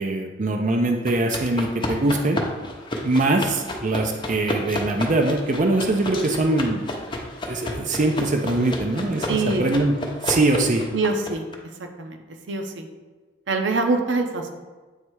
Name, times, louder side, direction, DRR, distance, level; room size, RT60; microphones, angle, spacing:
voice 1, 0.0-2.4 3.0-6.8 7.5-10.9, right 2 dB, 45° right, 3 dB, 0.5 m, -22 dB
sound 1, 1.1-11.6, left 1 dB, 25° left, 0.8 m, -32 dB
voice 2, 9.3-9.6 10.9-11.5 11.8-12.2 12.5-12.9 13.5-14.5, right 3 dB, 90° right, 5 dB, 0.8 m, -24 dB
8.0 x 3.3 x 4.6 m, 1.3 s
head